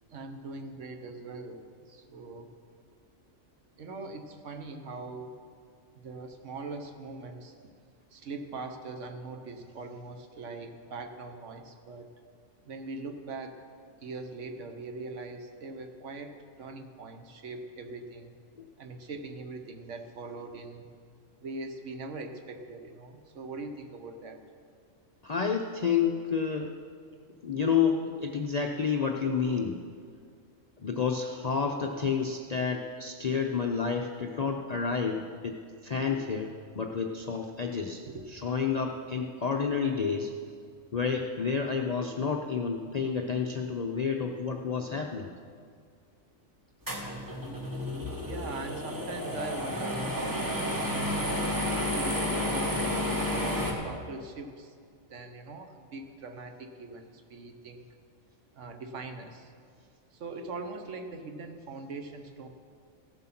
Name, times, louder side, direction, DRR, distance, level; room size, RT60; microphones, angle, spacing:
voice 1, 0.1-2.5 3.8-5.3 5.9-7.5 8.1-12.1 12.6-13.6 14.0-18.3 18.8-20.9 21.4-24.4 38.1-38.3 48.2-50.9 51.5-54.7 55.1-57.8 58.5-59.5 60.1-62.5, right 3 dB, 65° right, 6 dB, 1.2 m, -41 dB
voice 2, 25.2-26.7 27.4-29.8 30.8-35.6 35.8-38.0 38.3-40.4 40.9-45.3, left 6 dB, 50° left, 2 dB, 0.4 m, -30 dB
sound 1, 46.9-53.7, left 1 dB, 15° right, 1.2 m, -31 dB
15.0 x 7.7 x 5.9 m, 2.2 s
omnidirectional pair, 1.4 m